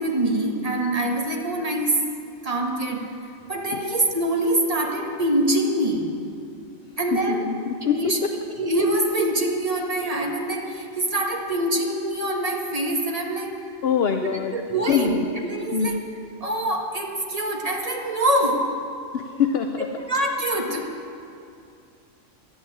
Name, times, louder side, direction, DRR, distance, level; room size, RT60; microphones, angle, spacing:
voice 1, 0.0-2.0 2.4-3.1 3.5-6.1 7.0-7.4 7.8-8.2 8.6-13.6 14.2-16.0 16.4-18.8 20.0-20.9, right 1 dB, 25° right, 0 dB, 1.7 m, -24 dB
voice 2, 7.1-8.3 13.8-14.6 14.9-15.2 15.7-16.0 19.1-19.9, left 7 dB, 55° left, 6 dB, 0.8 m, -24 dB
12.5 x 11.5 x 8.7 m, 2.5 s
omnidirectional pair, 1.4 m